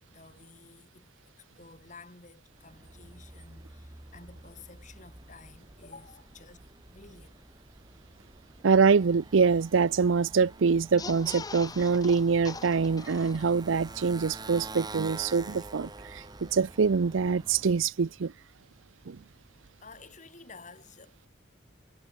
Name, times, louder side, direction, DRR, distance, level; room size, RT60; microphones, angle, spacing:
voice 1, 0.1-6.6 6.9-7.4 19.6-21.3, left 3 dB, 40° left, 7.0 m, -52 dB
Motorcycle, 2.5-17.9, right 3 dB, 20° right, 1.7 m, -47 dB
voice 2, 8.6-18.3 19.1-19.2, right 5 dB, 85° right, 0.5 m, -25 dB
sound 1, 10.8-13.8 14.2-14.3 14.5-14.6, left 4 dB, 20° left, 0.7 m, -42 dB
head